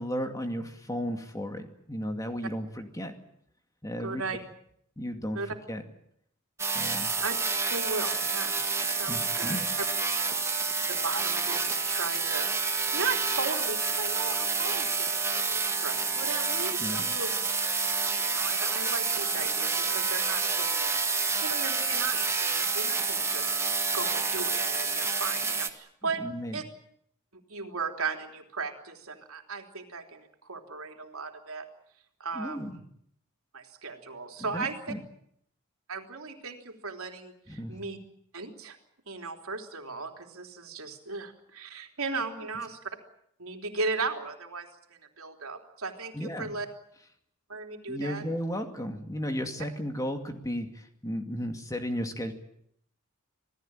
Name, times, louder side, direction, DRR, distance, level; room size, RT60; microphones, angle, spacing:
voice 1, 0.0-3.1 3.8-4.2 5.0-5.4 5.7-5.8 6.7-7.1 9.1-9.6 16.8-17.1 26.2-26.6 32.3-32.8 34.4-35.0 37.5-37.8 46.1-46.5 47.9-52.3, equal, 15° left, 5 dB, 2.3 m, -34 dB
voice 2, 4.0-4.4 5.4-5.6 7.2-7.4 7.7-8.6 8.8-9.6 10.9-17.3 18.2-20.9 21.4-23.5 23.9-26.3 26.5-26.6 27.5-31.7 32.2-32.6 33.5-34.8 35.9-38.0 38.3-38.8 39.1-42.8 43.4-44.7 45.2-46.7 47.5-48.3, right 4 dB, 75° right, 4 dB, 3.6 m, -36 dB
sound 1, 6.6-25.7, right 4 dB, 15° right, 1.9 m, -28 dB
27.0 x 17.5 x 9.0 m, 0.71 s
head